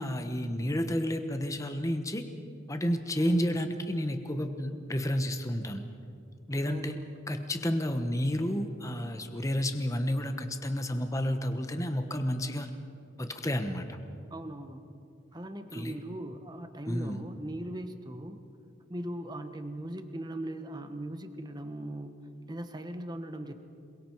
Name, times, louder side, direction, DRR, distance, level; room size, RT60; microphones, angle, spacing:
voice 1, 0.0-2.2 2.7-5.8 6.5-7.0 7.3-12.7 13.2-14.0 15.7-15.9 16.9-17.2, equal, 15° left, 7 dB, 1.1 m, -31 dB
voice 2, 3.2-3.6 6.6-7.0 14.3-14.8 15.3-18.4 18.9-23.5, right 1 dB, 20° right, 8 dB, 1.2 m, -39 dB
27.5 x 22.0 x 4.7 m, 2.5 s
head